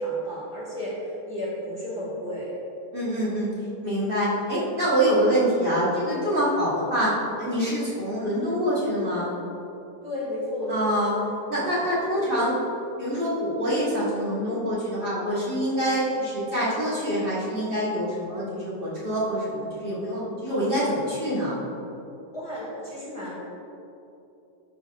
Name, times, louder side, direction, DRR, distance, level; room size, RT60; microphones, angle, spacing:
voice 1, 0.0-2.5 10.0-11.1 11.6-11.7 12.1-12.5 22.3-23.4, equal, 20° left, -8 dB, 2.0 m, -32 dB
voice 2, 2.9-3.5 3.8-7.1 7.4-9.3 10.7-11.1 11.5-12.6 13.0-21.5, equal, 35° right, -9 dB, 2.3 m, -25 dB
12.5 x 5.5 x 3.6 m, 2.8 s
omnidirectional pair, 1.6 m